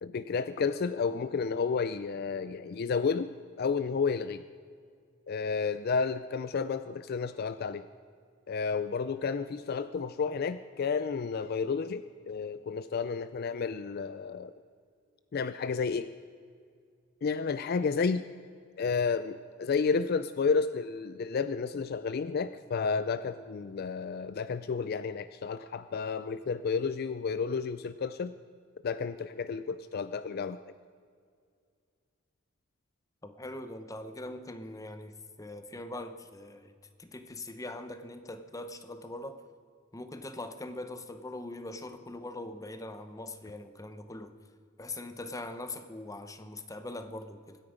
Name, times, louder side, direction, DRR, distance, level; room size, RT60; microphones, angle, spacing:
voice 1, 0.0-4.4 5.3-7.9 8.5-14.5 15.3-16.1 17.2-18.2 18.8-28.3 28.8-30.6, left 5 dB, 50° left, 13 dB, 0.4 m, -31 dB
voice 2, 33.2-36.7 37.0-39.4 39.9-44.4 44.8-47.6, left 2 dB, 15° left, 9 dB, 0.8 m, -42 dB
24.5 x 9.8 x 5.1 m, 2.2 s
head